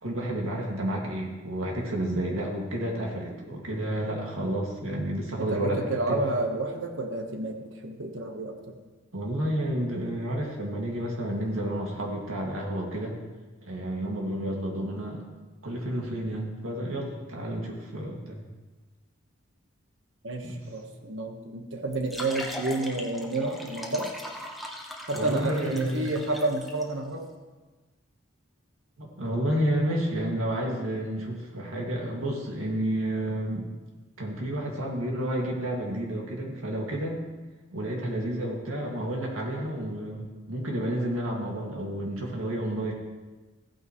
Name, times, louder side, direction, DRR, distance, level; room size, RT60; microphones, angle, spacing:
voice 1, 0.0-6.2 9.1-13.1 13.6-15.2 15.6-18.4 20.4-20.6 25.1-26.1 29.0-33.7 34.2-37.2 37.7-42.9, right 1 dB, 85° right, -1 dB, 2.1 m, -30 dB
voice 2, 5.4-8.6 20.2-24.1 25.1-27.3, right 2 dB, 65° right, 4 dB, 1.3 m, -30 dB
sound 1, 21.9-26.8, equal, ahead, 0.9 m, -39 dB
15.0 x 9.2 x 3.1 m, 1.2 s
head